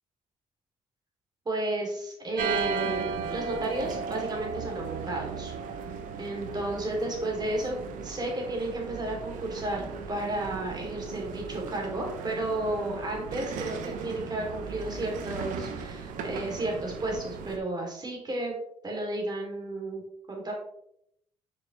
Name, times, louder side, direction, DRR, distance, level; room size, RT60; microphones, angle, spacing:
voice 1, 1.4-5.5 6.2-18.6 18.8-20.0 20.3-20.5, right 1 dB, 30° right, 0 dB, 2.8 m, -32 dB
sound 1, 2.4-17.6, right 6 dB, 85° right, 0.8 m, -36 dB
6.9 x 5.5 x 3.1 m, 0.72 s
supercardioid pair, 70°, 13 cm